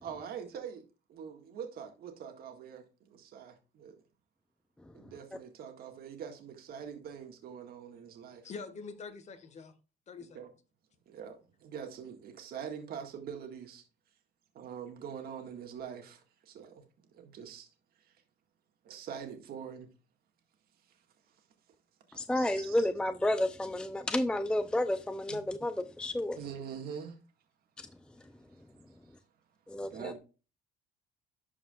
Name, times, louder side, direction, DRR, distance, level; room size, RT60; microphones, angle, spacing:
voice 1, 0.0-0.8 1.1-3.9 4.9-8.5 10.3-10.5 11.1-13.8 14.5-16.9 17.1-17.7 18.0-18.2 18.8-19.9 20.8-21.4 22.1-22.9 25.3-25.4 26.4-27.2 29.0-29.2 29.9-30.2, right 7 dB, 65° right, 1.8 m, -44 dB
voice 2, 8.4-9.7 10.1-10.4, left 5 dB, 45° left, 1.6 m, -44 dB
voice 3, 22.2-26.4 29.7-30.1, left 1 dB, 5° left, 0.5 m, -31 dB
11.5 x 4.9 x 2.4 m
cardioid pair, 110°, 17 cm